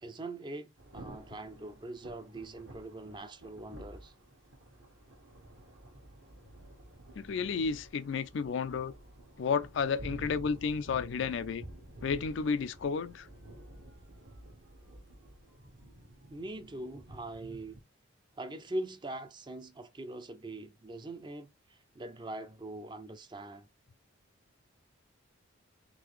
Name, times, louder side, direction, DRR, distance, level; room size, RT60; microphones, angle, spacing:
voice 1, 0.0-4.1 16.3-17.8 18.4-23.7, right 1 dB, 20° right, 0.4 m, -42 dB
Thunder / Rain, 0.8-17.8, right 1 dB, 65° right, 1.2 m, -51 dB
voice 2, 7.2-8.9 9.4-11.6 12.0-13.3, left 5 dB, 60° left, 0.3 m, -32 dB
3.8 x 3.2 x 3.1 m
head